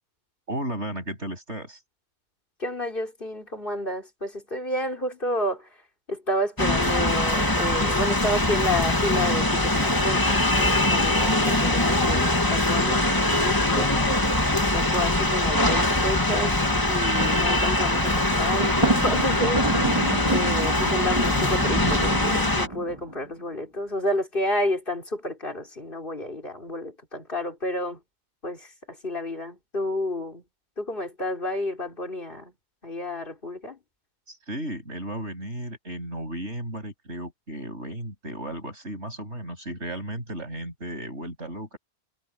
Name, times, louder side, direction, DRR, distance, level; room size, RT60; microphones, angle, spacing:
voice 1, 0.5-1.8 34.3-41.8, right 1 dB, 85° right, 7.9 m, -34 dB
voice 2, 2.6-5.7 6.1-14.2 14.6-19.7 20.3-28.0 28.4-30.4 30.8-32.5 32.8-33.8, left 1 dB, 50° left, 4.7 m, -30 dB
sound 1, 6.6-22.7, left 1 dB, 20° left, 1.9 m, -22 dB
Thunder, 18.6-23.2, right 2 dB, 25° right, 2.1 m, -28 dB
omnidirectional pair, 1.1 m